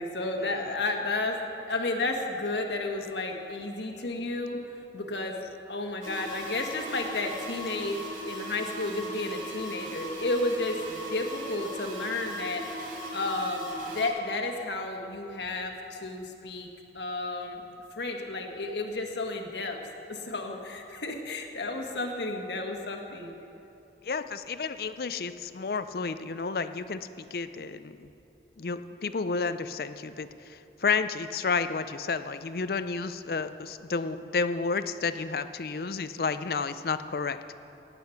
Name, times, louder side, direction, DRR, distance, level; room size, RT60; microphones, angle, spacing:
voice 1, 0.0-4.6 4.9-5.4 5.7-12.6 13.1-16.7 16.9-17.6 18.0-19.8 20.1-23.3, left 2 dB, 80° left, 3 dB, 1.4 m, -32 dB
sound 1, 6.0-14.1, equal, 50° right, 2.1 m, -39 dB
voice 2, 24.0-28.1 28.6-37.4, left 4 dB, 55° left, 12 dB, 0.5 m, -31 dB
17.5 x 8.5 x 5.8 m, 2.8 s
head